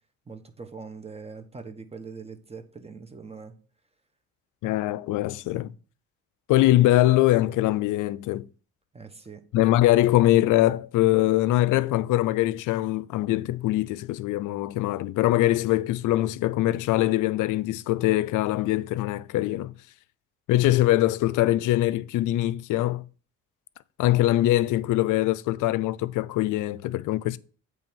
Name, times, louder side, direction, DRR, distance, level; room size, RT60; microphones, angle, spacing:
voice 1, 0.3-3.6 8.9-9.4, right 5 dB, 20° right, 1.1 m, -42 dB
voice 2, 4.6-5.7 6.5-8.4 9.5-19.7 20.5-23.0 24.0-27.4, left 15 dB, 80° left, 0.5 m, -23 dB
8.5 x 3.4 x 6.2 m
cardioid pair, 90°, 30 cm